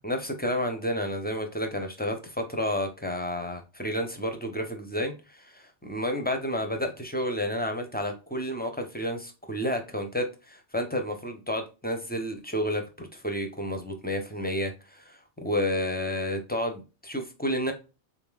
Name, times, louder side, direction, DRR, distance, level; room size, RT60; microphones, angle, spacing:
voice 1, 0.0-17.7, equal, 10° left, 5 dB, 0.5 m, -31 dB
3.8 x 3.7 x 2.3 m, 0.30 s
omnidirectional pair, 1.2 m